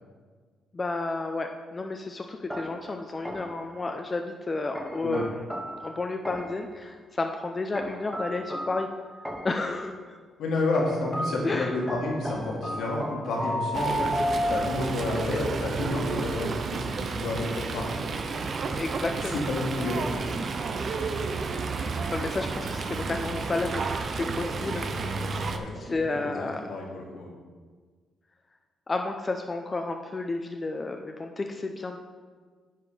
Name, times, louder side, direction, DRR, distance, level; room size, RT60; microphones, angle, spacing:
voice 1, 0.7-5.5 5.8-8.9 9.4-10.2 11.4-11.7 18.8-19.4 22.1-24.9 25.8-26.7 28.9-32.0, left 3 dB, 30° left, 4 dB, 0.5 m, -31 dB
sound 1, 2.5-3.7 4.7-6.7 7.7-9.7 10.7-15.0, equal, ahead, 0.9 m, -33 dB
voice 2, 10.4-16.8 17.1-18.0 19.3-20.2 25.5-25.8 26.1-26.3 26.7-27.3, left 2 dB, 75° left, -2 dB, 1.9 m, -30 dB
Fowl, 13.7-25.6, right 4 dB, 50° right, 0.7 m, -31 dB
9.5 x 4.2 x 5.0 m, 1.5 s
cardioid pair, 90°, 0 cm